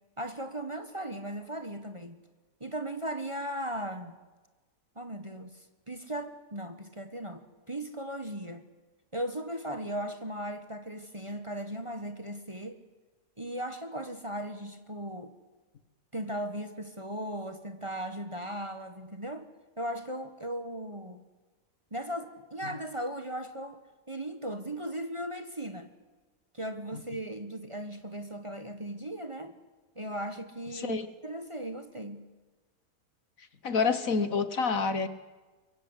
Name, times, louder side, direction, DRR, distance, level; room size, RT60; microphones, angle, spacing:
voice 1, 0.2-2.2 2.6-4.2 4.9-8.6 9.1-12.8 13.4-15.3 16.1-19.5 19.8-21.2 21.9-25.9 26.5-29.5 29.9-32.2, right 1 dB, 20° right, 8 dB, 1.4 m, -37 dB
voice 2, 30.7-31.1 33.6-35.1, left 5 dB, 55° left, 12 dB, 1.6 m, -27 dB
24.0 x 23.0 x 8.1 m, 1.2 s
omnidirectional pair, 1.7 m